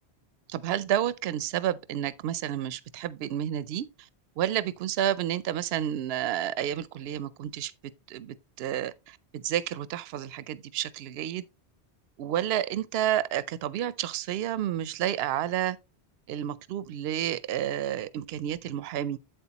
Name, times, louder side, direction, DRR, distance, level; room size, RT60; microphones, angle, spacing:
voice 1, 0.5-3.9 4.4-7.7 8.1-11.4 12.2-15.8 16.3-19.2, right 11 dB, 70° right, 0.8 m, -30 dB
8.1 x 7.9 x 2.9 m
omnidirectional pair, 1.1 m